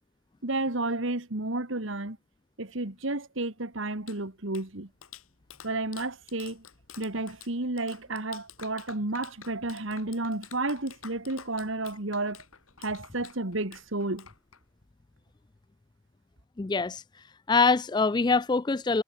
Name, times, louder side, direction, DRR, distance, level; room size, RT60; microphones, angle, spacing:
voice 1, 0.4-2.2 2.6-4.9 5.6-6.6 7.0-12.4 12.8-14.3, right 2 dB, 65° right, 2.1 m, -31 dB
Clapping, 3.7-14.9, left 8 dB, 90° left, 6.4 m, -50 dB
voice 2, 16.6-17.0 17.5-19.0, left 4 dB, 20° left, 0.3 m, -24 dB
head